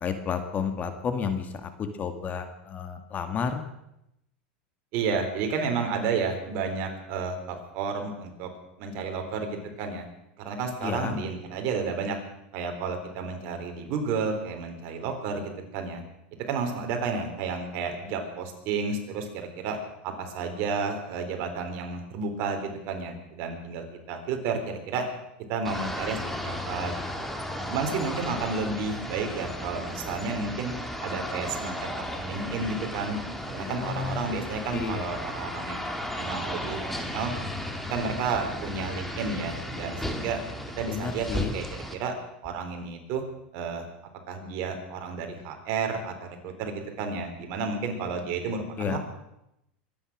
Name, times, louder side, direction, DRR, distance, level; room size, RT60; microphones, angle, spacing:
voice 1, 0.0-1.7 2.0-3.6 10.8-11.2 33.7-34.3 34.7-35.0 40.9-41.5 48.8-49.0, left 6 dB, 30° left, 8 dB, 1.8 m, -31 dB
voice 2, 4.9-8.5 8.8-10.0 10.4-12.2 12.5-16.0 16.5-19.8 20.0-25.0 25.5-27.3 27.7-30.7 31.0-33.2 33.5-35.9 36.1-36.8 37.1-37.3 37.9-40.4 40.8-41.7 41.9-42.1 42.4-43.2 43.5-43.8 44.3-49.0, right 4 dB, 55° right, 4 dB, 3.9 m, -31 dB
sound 1, 25.6-41.9, left 1 dB, 5° left, 2.1 m, -35 dB
23.5 x 9.9 x 6.2 m, 0.83 s
supercardioid pair, 120°, 5 cm